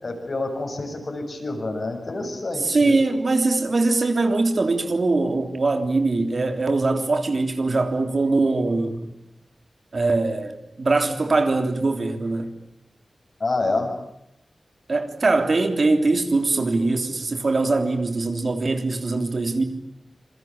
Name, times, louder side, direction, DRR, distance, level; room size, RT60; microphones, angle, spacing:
voice 1, 0.0-3.0 13.4-14.0, left 2 dB, 55° left, 7.3 m, -27 dB
voice 2, 2.6-9.1 9.9-12.5 14.9-19.6, right 3 dB, 55° right, 3.3 m, -22 dB
27.0 x 23.0 x 8.9 m
wide cardioid pair, 65°, 0 cm